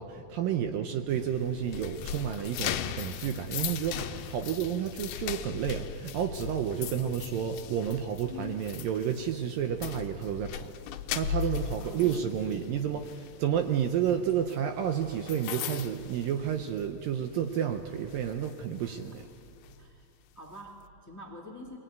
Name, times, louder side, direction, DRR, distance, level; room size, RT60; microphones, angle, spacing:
voice 1, 0.0-10.7 11.1-19.2, right 9 dB, 75° right, 6 dB, 2.2 m, -31 dB
voice 2, 0.6-1.1 4.3-4.5 6.8-7.1 11.4-12.9 16.3-16.4 18.8-19.3 19.8-20.1 20.3-21.8, left 1 dB, 10° left, 0 dB, 0.8 m, -48 dB
sound 1, 1.1-17.0 17.3-17.6 18.1-19.8, left 10 dB, 80° left, 2.5 m, -38 dB
23.0 x 19.5 x 9.3 m, 2.5 s
omnidirectional pair, 4.7 m